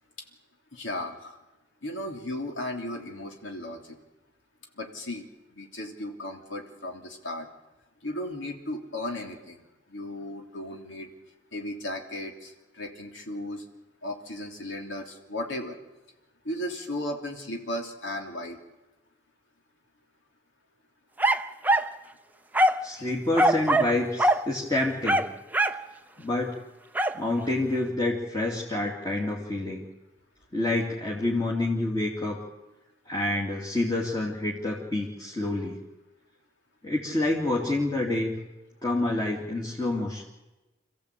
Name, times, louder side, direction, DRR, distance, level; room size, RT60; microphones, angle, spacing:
voice 1, 0.7-1.4 1.8-4.0 4.7-7.5 8.0-11.1 11.5-13.6 14.0-15.8 16.4-18.6, left 1 dB, 75° left, 2 dB, 3.1 m, -35 dB
sound 1, 21.2-21.9 22.5-22.9 23.4-23.9 24.2-24.4 25.0-25.8 27.0-27.2, right 1 dB, 10° right, 0.6 m, -22 dB
voice 2, 22.8-25.2 26.2-26.5 27.1-29.9 30.5-32.4 33.1-35.8 36.8-38.4 38.8-40.2, left 2 dB, 20° left, -3 dB, 2.8 m, -28 dB
27.5 x 15.5 x 8.4 m, 1.1 s
head